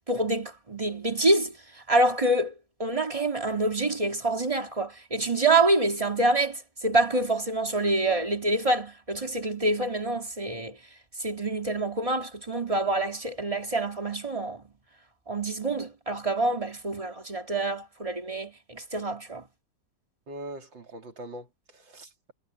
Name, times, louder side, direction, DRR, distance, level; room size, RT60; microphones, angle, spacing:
voice 1, 0.1-1.5 1.9-2.5 2.8-10.8 11.2-14.6 15.3-19.4, right 2 dB, 20° right, 1.8 m, -26 dB
voice 2, 20.3-22.3, right 1 dB, 80° right, 3.9 m, -42 dB
omnidirectional pair, 2.0 m